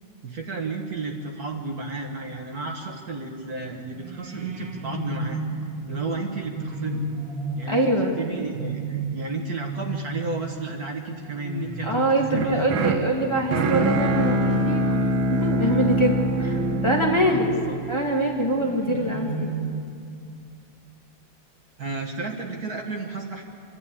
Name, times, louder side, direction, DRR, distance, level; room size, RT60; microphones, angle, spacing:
voice 1, 0.2-7.0 7.6-12.7 17.2-17.8 21.8-23.4, right 3 dB, 50° right, 2 dB, 1.8 m, -32 dB
sound 1, 3.9-15.5 16.3-17.6 18.6-20.1, right 3 dB, 65° right, 2.3 m, -34 dB
voice 2, 7.7-8.2 11.9-15.0 15.3-17.5 17.9-19.5, right 1 dB, 15° left, -2 dB, 2.2 m, -24 dB
sound 2, 12.3-18.4, right 1 dB, 90° right, 2.1 m, -24 dB
26.5 x 12.5 x 8.5 m, 2.4 s
omnidirectional pair, 2.2 m